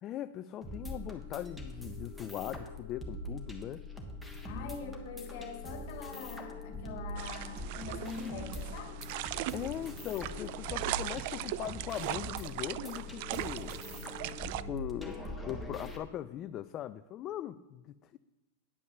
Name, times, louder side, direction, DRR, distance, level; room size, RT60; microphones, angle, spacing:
voice 1, 0.0-3.8 4.5-4.7 9.5-13.8 14.7-18.2, left 12 dB, 30° left, 11 dB, 0.3 m, -40 dB
sound 1, 0.6-16.0, left 1 dB, ahead, 1.3 m, -43 dB
voice 2, 4.4-9.0, left 5 dB, 60° left, 4 dB, 1.5 m, -43 dB
sound 2, 7.2-14.6, right 15 dB, 55° right, 0.4 m, -39 dB
9.6 x 5.5 x 6.7 m, 1.1 s
supercardioid pair, 140°, 0 cm